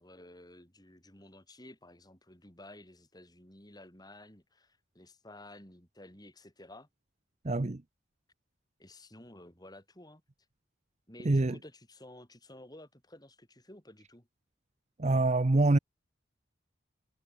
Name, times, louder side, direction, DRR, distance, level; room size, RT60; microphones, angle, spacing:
voice 1, 0.0-6.9 8.8-10.2 11.1-14.3, left 1 dB, 20° left, 5.4 m, -53 dB
voice 2, 7.4-7.8 11.2-11.6 15.0-15.8, right 2 dB, 35° right, 0.7 m, -25 dB
head